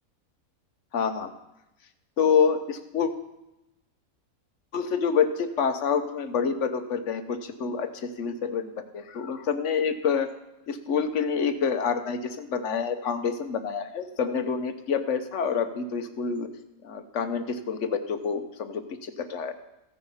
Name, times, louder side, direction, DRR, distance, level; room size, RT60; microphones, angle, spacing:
voice 1, 0.9-1.3 2.2-3.1 4.7-10.3 10.7-16.5 16.8-19.5, left 6 dB, 55° left, 9 dB, 1.2 m, -27 dB
15.5 x 10.0 x 5.6 m, 0.94 s
omnidirectional pair, 1.6 m